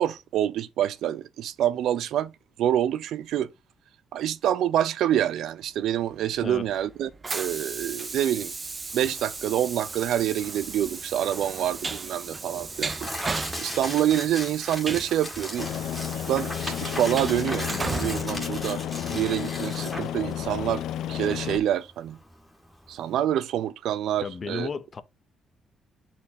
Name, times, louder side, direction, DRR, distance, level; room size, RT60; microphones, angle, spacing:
voice 1, 0.0-2.3 2.6-3.5 4.1-8.5 8.9-13.1 13.6-15.7 16.3-18.8 19.1-22.2 22.9-24.7, right 11 dB, 70° right, 0.5 m, -27 dB
Train, 6.1-19.3, right 4 dB, 20° right, 0.4 m, -36 dB
Tearing, 8.9-23.2, left 1 dB, ahead, 1.6 m, -38 dB
Aircraft, 15.6-21.6, left 11 dB, 70° left, 0.6 m, -32 dB
voice 2, 24.2-25.0, left 5 dB, 25° left, 0.6 m, -33 dB
9.3 x 4.4 x 2.7 m
cardioid pair, 180°, 0 cm